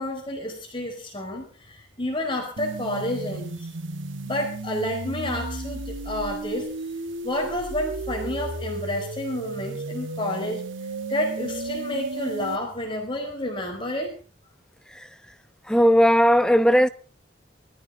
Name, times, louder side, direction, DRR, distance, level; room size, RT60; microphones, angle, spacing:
voice 1, 0.0-3.7 4.2-6.7 7.2-10.6 11.1-14.1, left 1 dB, 25° left, 4.6 m, -30 dB
sound 1, 2.6-12.6, right 2 dB, 85° right, 1.3 m, -34 dB
voice 2, 14.9-15.3 15.6-16.9, equal, 5° left, 0.8 m, -18 dB
22.0 x 14.0 x 3.7 m
head